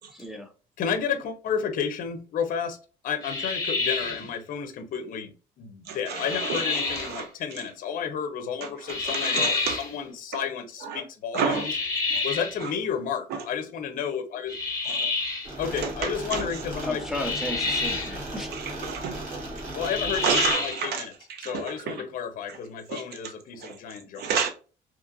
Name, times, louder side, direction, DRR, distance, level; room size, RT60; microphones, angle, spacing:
voice 1, 0.1-0.5 16.8-18.5, left 1 dB, ahead, 0.5 m, -34 dB
voice 2, 0.8-2.8 3.0-11.7 12.2-14.5 15.6-17.0 19.8-21.1 21.4-24.3, left 7 dB, 55° left, 0.6 m, -31 dB
sound 1, 3.2-4.3 6.1-7.1 8.9-9.9 11.5-12.6 14.5-15.5 17.1-18.2 19.8-20.9, left 4 dB, 20° left, 1.2 m, -28 dB
voice 3, 5.9-7.3 8.6-9.8 10.8-11.0 11.3-11.7 12.1-12.2 12.6-12.7 14.9-15.0 15.8-16.5 18.5-19.4 20.2-21.0 21.3-22.0 22.5-22.6 22.9-23.0 23.6-23.7 24.2-24.5, right 6 dB, 70° right, 0.7 m, -30 dB
sound 2, 15.4-20.5, right 1 dB, 50° right, 1.3 m, -36 dB
2.8 x 2.5 x 2.4 m
cardioid pair, 110°, 17 cm